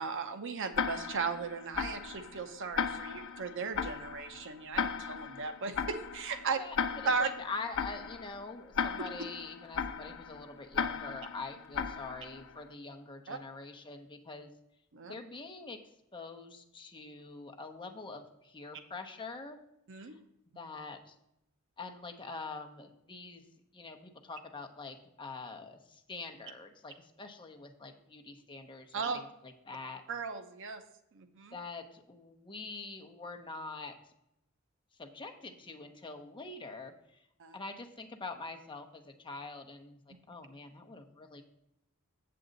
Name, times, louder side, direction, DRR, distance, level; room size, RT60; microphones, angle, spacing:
voice 1, 0.0-6.6 7.0-7.3 9.0-9.1 13.3-13.4 14.9-15.1 19.9-20.2 28.9-29.2 30.1-30.8 31.1-31.5 37.4-37.6, right 5 dB, 60° right, 9 dB, 0.7 m, -36 dB
Tick-tock, 0.7-12.6, left 6 dB, 60° left, 0.6 m, -37 dB
voice 2, 7.0-14.5 15.1-15.8 16.1-19.6 20.0-20.2 20.6-21.1 21.8-23.4 23.7-30.0 31.5-34.0 35.0-37.2 37.5-41.4, left 3 dB, 20° left, 5 dB, 0.8 m, -45 dB
7.6 x 7.6 x 3.9 m, 0.82 s
head